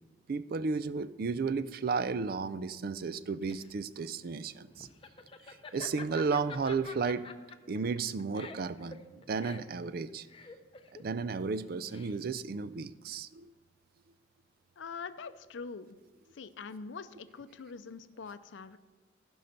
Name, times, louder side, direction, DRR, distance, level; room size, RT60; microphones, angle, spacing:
voice 1, 0.3-4.9 5.7-7.3 7.7-10.3 11.0-13.5, right 4 dB, 50° right, 15 dB, 0.4 m, -33 dB
Laughter, 3.0-12.5, left 4 dB, 30° left, 0.6 m, -48 dB
voice 2, 14.8-16.0 16.3-18.8, left 5 dB, 75° left, 12 dB, 0.5 m, -44 dB
15.0 x 5.5 x 5.2 m, 1.3 s
head